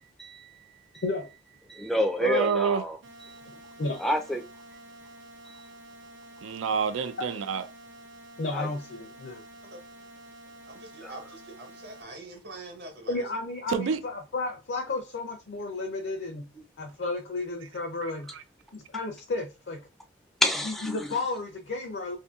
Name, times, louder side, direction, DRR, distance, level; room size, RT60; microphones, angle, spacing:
voice 1, 1.7-3.3 4.0-4.4 8.5-8.7 11.0-11.2 20.4-21.2, left 1 dB, ahead, 0.4 m, -29 dB
voice 2, 2.2-2.8 6.4-7.6 13.7-14.0 18.0-18.4, right 6 dB, 90° right, 0.4 m, -28 dB
sound 1, 3.0-12.0, right 1 dB, 75° right, 0.8 m, -49 dB
voice 3, 8.4-9.4 13.1-16.5 16.8-18.3 18.7-19.8 20.6-22.2, left 3 dB, 60° left, 0.6 m, -32 dB
voice 4, 10.7-13.2 16.5-16.6, right 2 dB, 55° right, 1.1 m, -44 dB
2.7 x 2.6 x 3.5 m
head